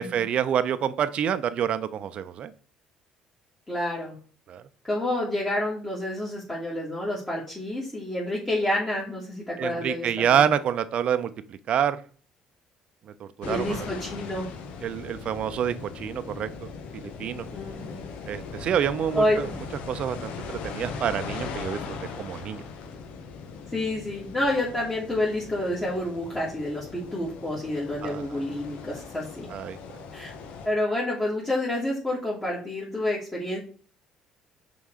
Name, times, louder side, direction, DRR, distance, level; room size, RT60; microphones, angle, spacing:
voice 1, 0.0-2.5 4.5-4.6 9.6-12.0 13.1-13.8 14.8-16.5 16.9-17.5 18.3-19.5 19.9-22.6 28.0-28.4 29.5-29.8, right 9 dB, 55° right, 13 dB, 0.6 m, -27 dB
voice 2, 3.7-4.1 4.9-10.4 13.4-14.5 17.5-18.0 19.1-19.5 23.7-29.5 30.1-30.3 30.6-33.6, left 1 dB, 20° left, -6 dB, 2.5 m, -28 dB
sound 1, 13.4-30.7, left 5 dB, 70° left, 1.0 m, -39 dB
5.6 x 3.9 x 4.8 m, 0.42 s
hypercardioid pair, 60°, 2 cm